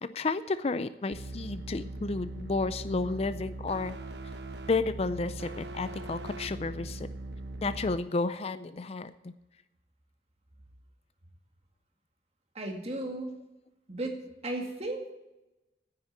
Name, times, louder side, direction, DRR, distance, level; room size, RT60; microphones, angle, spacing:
voice 1, 0.0-4.0 4.7-7.1 7.6-9.3, left 3 dB, 35° left, 13 dB, 0.4 m, -32 dB
sound 1, 1.1-8.0, right 2 dB, 75° right, 1.2 m, -40 dB
voice 2, 12.5-13.3 13.9-15.1, right 1 dB, 35° right, 3 dB, 2.1 m, -35 dB
9.8 x 9.5 x 8.1 m, 1.0 s
head